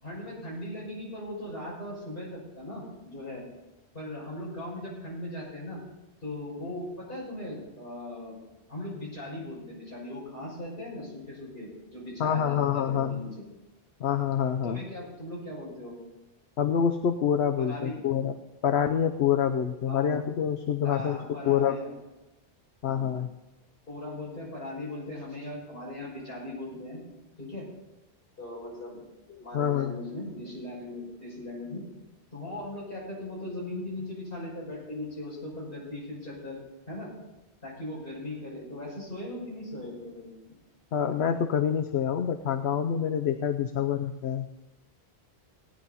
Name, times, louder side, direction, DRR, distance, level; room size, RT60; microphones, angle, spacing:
voice 1, 0.0-3.4 3.9-5.8 6.2-8.3 8.7-13.3 14.6-16.0 17.6-18.0 19.9-20.2 20.8-21.9 22.8-23.1 23.9-27.0 27.4-27.7 28.4-29.0 29.4-31.8 32.3-36.6 36.9-37.1 37.6-40.3, left 1 dB, 55° left, -5 dB, 6.3 m, -39 dB
voice 2, 12.2-13.3 14.0-14.8 16.6-18.3 18.6-21.2 21.5-21.8 22.8-23.3 29.5-29.9 40.9-44.5, left 8 dB, 75° left, 7 dB, 0.9 m, -26 dB
17.5 x 10.5 x 4.1 m, 1.0 s
omnidirectional pair, 1.1 m